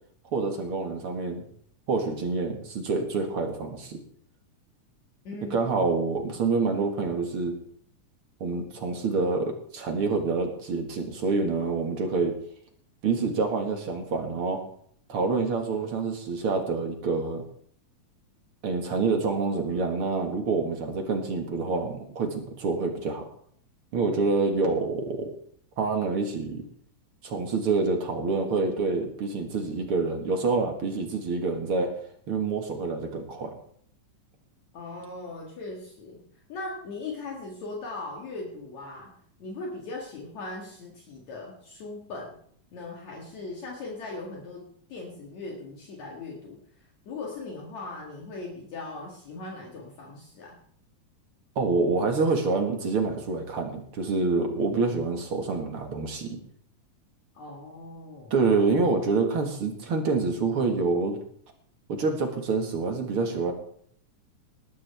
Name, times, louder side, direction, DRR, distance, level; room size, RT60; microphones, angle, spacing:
voice 1, 0.3-1.4 1.9-4.0 5.5-7.5 8.4-12.3 13.0-14.6 15.1-17.4 18.6-23.3 23.9-25.3 25.8-26.6 27.2-31.9 32.3-33.5 51.6-56.4 58.3-61.2 61.9-63.5, right 4 dB, 50° right, 4 dB, 2.3 m, -27 dB
voice 2, 5.2-5.6 34.7-36.2 36.5-39.1 39.4-42.4 42.7-46.6 47.1-50.6 57.3-58.3, left 3 dB, 60° left, -1 dB, 3.0 m, -39 dB
19.0 x 12.0 x 3.5 m, 0.62 s
omnidirectional pair, 3.7 m